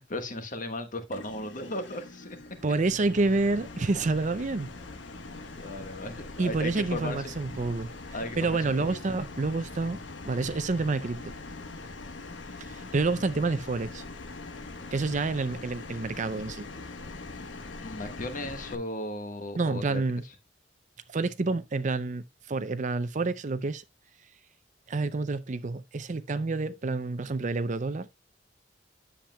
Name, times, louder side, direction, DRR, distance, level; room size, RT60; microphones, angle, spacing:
voice 1, 0.0-2.4 5.4-7.3 8.1-9.0 17.8-20.0, left 1 dB, 45° left, 1.4 m, -36 dB
sound 1, 1.1-18.7, left 3 dB, 70° left, 1.2 m, -42 dB
voice 2, 2.6-4.7 6.4-7.9 8.4-10.0 10.2-11.3 12.6-14.0 14.9-16.7 19.5-20.2 21.1-23.8 24.9-28.1, right 3 dB, 40° right, 0.5 m, -28 dB
10.0 x 7.3 x 2.2 m
head